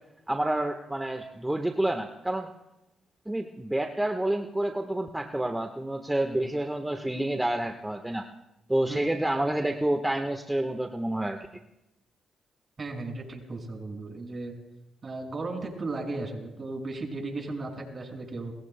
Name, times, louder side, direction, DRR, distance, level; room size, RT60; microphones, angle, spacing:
voice 1, 0.3-2.5 3.2-8.3 8.7-11.4, right 1 dB, 10° right, 5 dB, 1.3 m, -28 dB
voice 2, 12.8-14.5 15.0-18.5, right 3 dB, 45° right, 2 dB, 5.8 m, -35 dB
29.0 x 21.0 x 2.2 m, 0.92 s
supercardioid pair, 55°, 0 cm